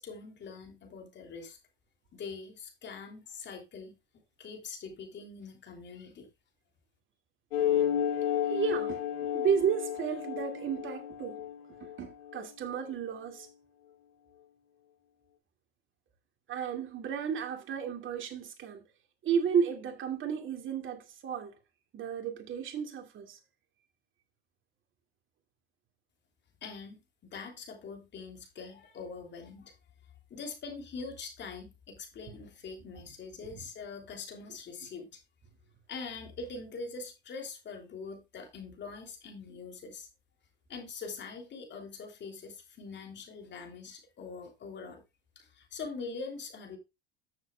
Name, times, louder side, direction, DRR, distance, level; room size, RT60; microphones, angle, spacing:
voice 1, 0.0-1.6 2.1-4.0 4.4-6.3 26.6-29.7 30.3-35.2 35.9-40.1 40.7-45.0 45.3-46.8, left 4 dB, 35° left, 3.2 m, -43 dB
sound 1, 7.5-12.5, left 10 dB, 85° left, 5.7 m, -32 dB
voice 2, 8.5-11.4 11.8-13.5 16.5-18.9 19.2-21.6 21.9-23.4 33.5-33.6, right 7 dB, 40° right, 2.6 m, -33 dB
13.5 x 7.1 x 2.4 m
hypercardioid pair, 95°, 30 cm